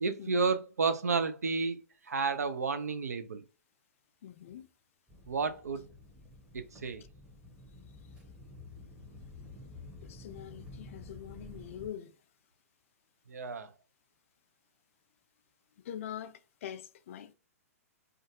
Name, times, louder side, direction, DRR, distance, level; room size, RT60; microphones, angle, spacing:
voice 1, 0.0-1.8 2.1-3.4 5.3-5.9 6.5-7.0 13.3-13.7, right 4 dB, 85° right, 0.5 m, -31 dB
voice 2, 4.2-4.7 10.0-12.1 15.8-17.3, left 10 dB, 55° left, 0.3 m, -44 dB
sound 1, 5.1-11.9, left 2 dB, 10° right, 0.7 m, -50 dB
2.5 x 2.3 x 2.7 m
hypercardioid pair, 115°, 8 cm